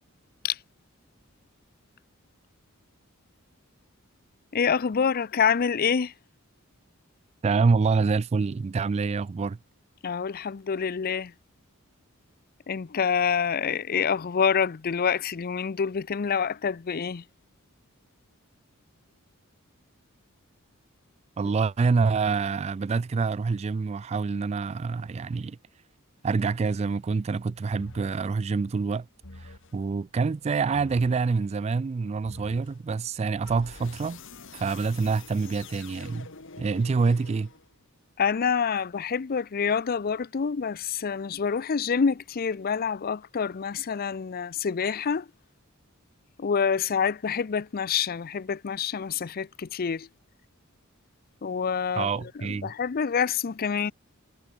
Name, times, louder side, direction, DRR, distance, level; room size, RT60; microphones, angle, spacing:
voice 1, 4.5-6.1 10.0-11.3 12.7-17.2 38.2-45.3 46.4-50.1 51.4-52.1 52.4-53.9, left 6 dB, 45° left, 0.5 m, -27 dB
voice 2, 7.4-9.6 21.4-25.6 26.2-29.1 29.4-34.2 34.5-36.3 36.6-37.5 52.0-52.7, right 4 dB, 30° right, 0.3 m, -26 dB
sound 1, 27.7-28.3 29.2-29.8 30.7-31.3 32.2-32.8 33.4-37.8, left 3 dB, 60° left, 2.2 m, -46 dB
head